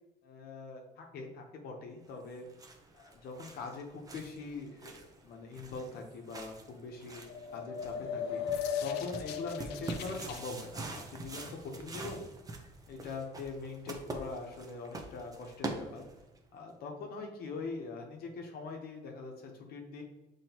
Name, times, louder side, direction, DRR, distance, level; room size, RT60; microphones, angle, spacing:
voice 1, 0.2-2.5 2.9-7.2 7.5-12.2 12.9-16.1 16.5-20.0, left 3 dB, 65° left, 2 dB, 0.8 m, -43 dB
sound 1, 2.2-16.4, right 2 dB, 20° right, 0.6 m, -45 dB
sound 2, 7.1-10.4, left 7 dB, 85° left, 0.4 m, -37 dB
5.9 x 3.0 x 2.8 m, 0.98 s
cardioid pair, 110°, 17 cm